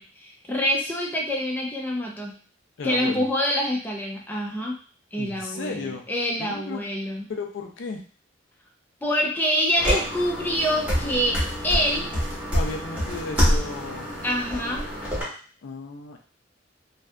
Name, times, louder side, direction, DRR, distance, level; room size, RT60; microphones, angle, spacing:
voice 1, 0.0-2.3 2.8-4.7 5.1-7.3 9.0-11.4 11.6-12.1 14.2-14.8, equal, 10° left, -1 dB, 0.5 m, -26 dB
voice 2, 2.8-3.3 5.2-6.0 6.4-6.8 7.3-8.0 12.5-14.1 15.6-16.2, left 3 dB, 85° left, 3 dB, 0.5 m, -34 dB
sound 1, 9.8-15.2, equal, 5° right, 1.0 m, -26 dB
2.6 x 2.4 x 2.2 m, 0.40 s
head